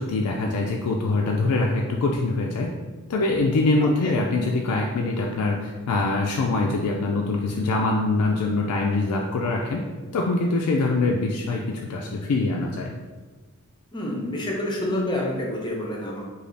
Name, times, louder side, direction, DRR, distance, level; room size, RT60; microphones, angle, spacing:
voice 1, 0.0-2.7 3.1-9.9 10.1-12.9, left 3 dB, 85° left, 0 dB, 0.4 m, -24 dB
voice 2, 13.9-16.3, left 1 dB, 20° left, -2 dB, 0.6 m, -28 dB
3.3 x 2.3 x 3.8 m, 1.3 s
head